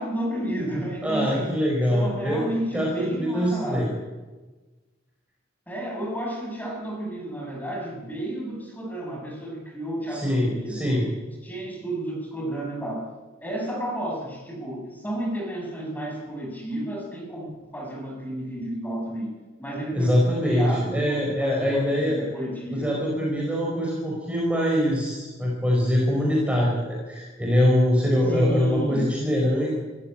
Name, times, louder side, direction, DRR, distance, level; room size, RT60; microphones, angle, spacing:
voice 1, 0.0-1.5 1.9-3.9 5.7-10.9 11.4-13.1 13.4-19.3 19.6-20.2 20.4-23.0 28.3-29.1, right 1 dB, 10° left, 0 dB, 6.5 m, -31 dB
voice 2, 1.0-2.5 2.7-3.9 10.1-11.1 19.9-22.2 22.7-29.7, equal, 5° right, -3 dB, 4.9 m, -23 dB
25.5 x 15.0 x 9.0 m, 1.3 s
head